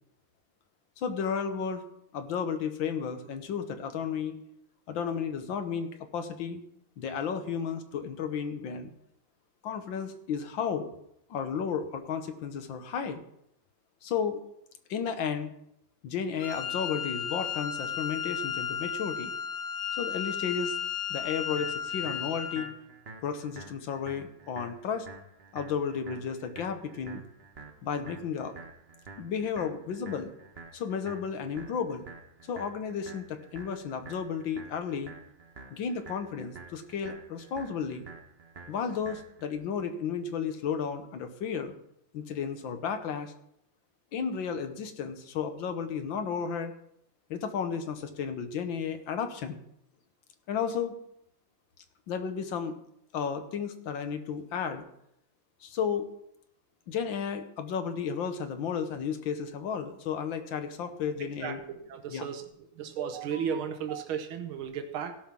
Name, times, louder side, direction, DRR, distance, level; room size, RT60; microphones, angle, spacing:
voice 1, 1.0-1.8 2.1-4.4 4.9-6.6 7.0-8.9 9.6-10.9 11.3-13.2 14.0-14.4 14.9-15.5 16.0-19.3 20.0-20.8 21.1-22.7 23.2-25.1 25.5-27.2 27.8-28.5 29.2-30.3 30.7-32.1 32.5-35.1 35.7-38.1 38.7-41.7 42.1-43.3 44.1-46.7 47.3-49.6 50.5-51.0 52.1-52.8 53.1-54.8 55.6-56.1 56.9-61.6 62.1-62.2, left 6 dB, 70° left, 8 dB, 1.7 m, -33 dB
Wind instrument woodwind instrument, 16.4-22.7, left 8 dB, 90° left, 2.1 m, -34 dB
sound 1, 21.6-39.5, right 3 dB, 35° right, 1.2 m, -49 dB
voice 2, 61.2-61.6 61.9-62.4 62.8-65.1, right 7 dB, 85° right, 7 dB, 1.8 m, -34 dB
16.5 x 5.7 x 5.9 m, 0.76 s
omnidirectional pair, 2.2 m